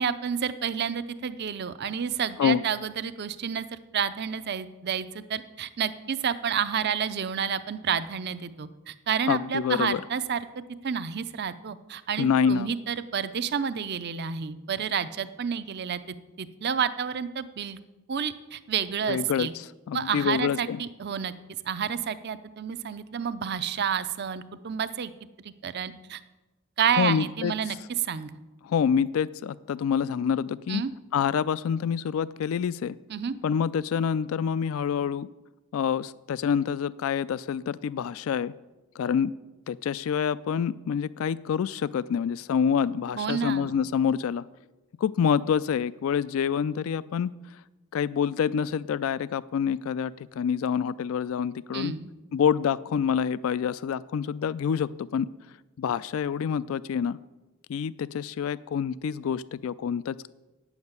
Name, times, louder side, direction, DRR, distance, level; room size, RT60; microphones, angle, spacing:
voice 1, 0.0-3.7 3.9-10.4 10.8-16.0 16.4-17.8 18.1-19.5 19.9-21.3 21.7-25.1 25.4-26.2 26.8-28.3 30.7-30.9 33.1-33.4 43.2-43.7 51.7-52.1, right 7 dB, 45° right, 14 dB, 0.5 m, -30 dB
voice 2, 9.3-10.0 12.2-12.7 19.1-20.8 27.0-27.5 28.6-30.8 31.1-33.0 33.4-35.3 35.7-38.5 39.0-39.3 39.7-44.4 45.0-47.3 47.9-51.9 52.3-55.3 55.8-57.2 57.7-60.3, left 7 dB, 65° left, 18 dB, 0.3 m, -27 dB
9.4 x 7.2 x 8.0 m, 1.1 s
head